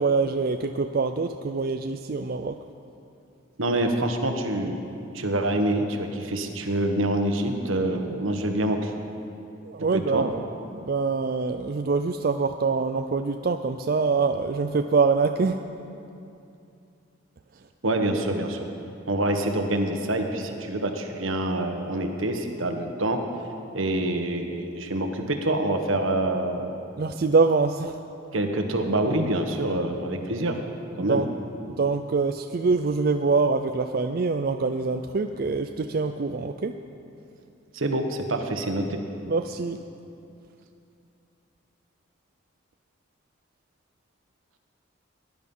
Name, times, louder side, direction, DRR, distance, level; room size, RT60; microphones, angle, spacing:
voice 1, 0.0-2.6 9.6-10.4 10.9-15.6 27.0-28.0 31.0-31.3 31.7-36.7 39.3-39.8, right 4 dB, 45° right, 7 dB, 0.4 m, -24 dB
voice 2, 3.6-4.8 5.1-8.9 9.9-10.3 17.8-18.7 19.1-23.2 23.7-26.7 28.3-30.6 31.0-31.2 37.7-39.0, right 1 dB, 80° right, 5 dB, 1.3 m, -26 dB
18.5 x 10.5 x 5.5 m, 2.7 s
head